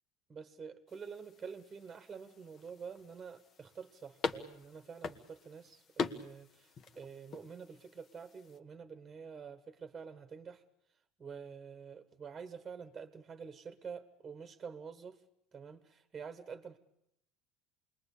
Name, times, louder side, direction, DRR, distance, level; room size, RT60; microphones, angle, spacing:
voice 1, 0.3-10.6 11.2-15.2 15.5-16.8, right 6 dB, 20° right, 10 dB, 1.6 m, -48 dB
sound 1, 0.9-8.6, left 5 dB, 35° left, 1.5 m, -44 dB
28.0 x 21.0 x 8.5 m, 0.78 s
cardioid pair, 140°, 0 cm